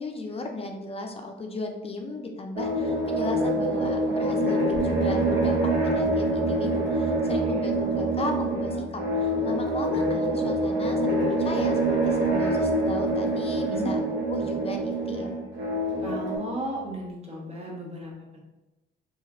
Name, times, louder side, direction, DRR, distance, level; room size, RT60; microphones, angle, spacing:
voice 1, 0.0-11.8 12.1-14.0 14.3-15.4, left 2 dB, 30° left, 3 dB, 0.4 m, -35 dB
sound 1, 2.6-16.4, right 1 dB, 80° right, 0.9 m, -25 dB
sound 2, 4.7-17.1, left 3 dB, 5° right, 1.1 m, -41 dB
voice 2, 7.2-7.7 13.7-13.9 16.0-18.4, right 1 dB, 30° right, -2 dB, 0.9 m, -35 dB
2.9 x 2.4 x 2.5 m, 1.0 s
cardioid pair, 90°, 20 cm